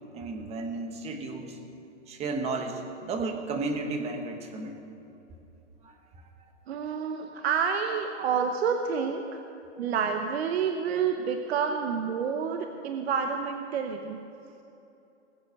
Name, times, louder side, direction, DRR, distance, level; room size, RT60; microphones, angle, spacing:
voice 1, 0.1-1.6 2.1-4.8 5.8-5.9, right 3 dB, 15° right, 4 dB, 1.2 m, -33 dB
voice 2, 6.7-9.4 9.8-14.2, right 6 dB, 60° right, 5 dB, 1.0 m, -29 dB
20.0 x 8.2 x 6.4 m, 2.9 s
hypercardioid pair, 150°, 36 cm